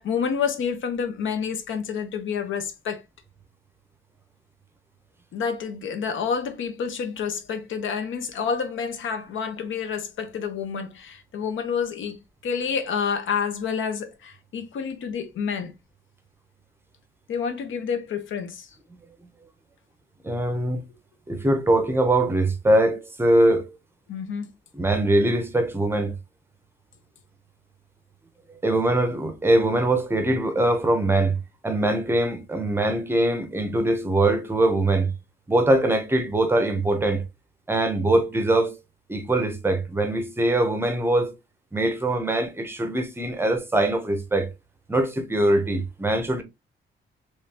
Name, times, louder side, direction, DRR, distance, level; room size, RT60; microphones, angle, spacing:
voice 1, 0.0-3.0 5.3-15.7 17.3-18.7 24.1-24.5, left 6 dB, 70° left, 0.8 m, -29 dB
voice 2, 20.2-20.8 21.3-23.6 24.7-26.2 28.6-35.1 35.5-37.2 37.7-38.7 39.1-41.3 41.7-44.5 44.9-46.4, right 1 dB, 10° right, 0.6 m, -22 dB
3.7 x 3.2 x 2.7 m
wide cardioid pair, 170°, 21 cm